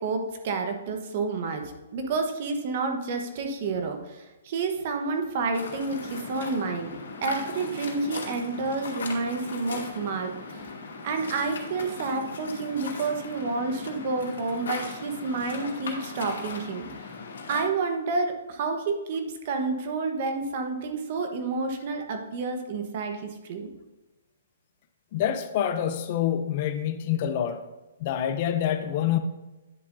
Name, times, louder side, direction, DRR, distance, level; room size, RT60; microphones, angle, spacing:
voice 1, 0.0-6.9 7.2-10.7 11.0-16.9 17.5-23.7, right 3 dB, 40° right, 5 dB, 1.1 m, -29 dB
Waves surf, 5.5-17.6, left 4 dB, 90° left, 2.3 m, -38 dB
voice 2, 25.1-27.6 28.0-29.2, left 10 dB, 35° left, 10 dB, 0.5 m, -26 dB
10.0 x 7.2 x 2.7 m, 1.1 s
hypercardioid pair, 165°, 0 cm